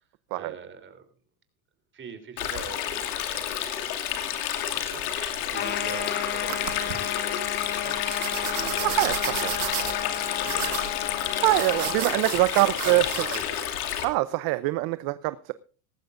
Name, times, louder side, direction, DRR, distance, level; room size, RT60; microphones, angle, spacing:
voice 1, 0.3-1.0 1.9-8.0 8.5-10.8 11.4-12.3 12.6-13.8 14.2-14.3, right 6 dB, 25° right, 7 dB, 3.4 m, -43 dB
Stream, 2.4-14.0, left 10 dB, 85° left, 2.6 m, -30 dB
sound 1, 4.9-6.0 6.5-7.0 8.1-13.4, right 15 dB, 90° right, 1.8 m, -34 dB
sound 2, 5.5-12.0, left 10 dB, 25° left, 0.7 m, -33 dB
voice 2, 8.8-9.5 11.4-13.0 14.0-15.5, right 20 dB, 55° right, 14 dB, 0.8 m, -24 dB
18.5 x 15.0 x 2.6 m, 0.38 s
supercardioid pair, 125°, 44 cm